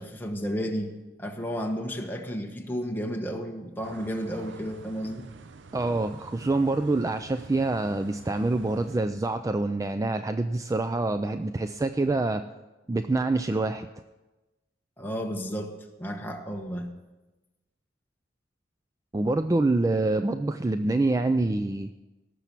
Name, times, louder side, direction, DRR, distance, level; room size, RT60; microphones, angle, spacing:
voice 1, 0.0-5.3 15.0-16.9, equal, 10° left, 2 dB, 1.3 m, -32 dB
sound 1, 3.8-9.0, right 4 dB, 75° right, 0.6 m, -47 dB
voice 2, 5.7-12.4 12.9-13.9 19.1-21.9, right 2 dB, 15° right, 9 dB, 0.3 m, -26 dB
17.5 x 6.9 x 6.1 m, 1.1 s
head